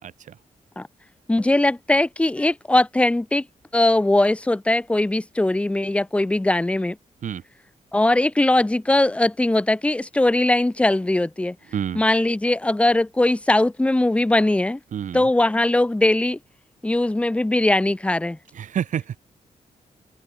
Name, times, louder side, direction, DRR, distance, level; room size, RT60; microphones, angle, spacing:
voice 1, 0.0-0.4 7.2-7.4 11.7-12.0 14.9-15.3 18.5-19.2, right 9 dB, 80° right, 2.1 m, -29 dB
voice 2, 1.3-3.5 3.7-7.0 7.9-11.6 11.9-14.8 15.1-16.4 16.8-18.4, left 1 dB, 10° left, 0.9 m, -20 dB
open air
wide cardioid pair, 145°, 13 cm